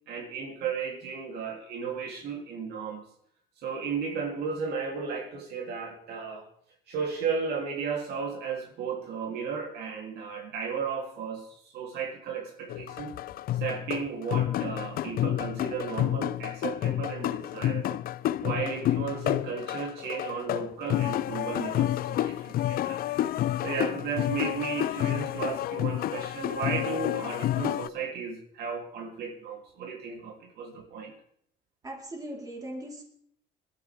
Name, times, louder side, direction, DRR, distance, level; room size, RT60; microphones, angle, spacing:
voice 1, 0.1-3.0 3.6-6.5 6.9-13.2 13.5-18.0 18.4-23.3 23.6-31.1, right 5 dB, 75° right, 0 dB, 3.4 m, -34 dB
sound 1, 12.7-27.9, left 13 dB, 60° left, 0.5 m, -30 dB
voice 2, 31.8-33.0, right 1 dB, 20° right, -1 dB, 4.3 m, -39 dB
21.0 x 13.0 x 3.6 m, 0.68 s
cardioid pair, 110°, 17 cm